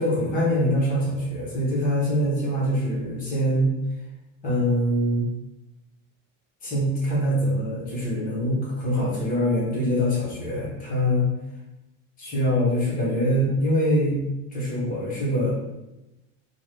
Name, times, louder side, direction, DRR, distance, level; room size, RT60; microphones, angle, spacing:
voice 1, 0.0-3.7 4.4-5.3 6.6-11.3 12.2-14.2 14.5-15.5, equal, 25° left, -4 dB, 0.8 m, -24 dB
3.6 x 2.1 x 3.1 m, 0.96 s
cardioid pair, 180°, 35 cm